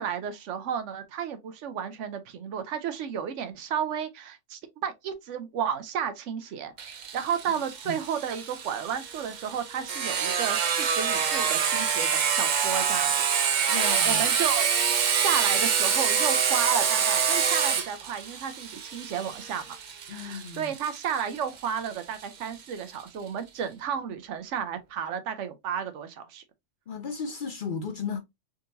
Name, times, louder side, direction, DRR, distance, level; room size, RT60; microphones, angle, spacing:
voice 1, 0.0-6.7 7.1-13.1 13.8-19.8 20.1-26.4, right 8 dB, 80° right, 0.9 m, -32 dB
Sawing, 6.8-22.2, right 7 dB, 55° right, 0.5 m, -26 dB
voice 2, 13.7-14.3 20.1-20.7 26.9-28.2, left 5 dB, 60° left, 0.5 m, -35 dB
3.6 x 2.8 x 2.6 m
omnidirectional pair, 1.3 m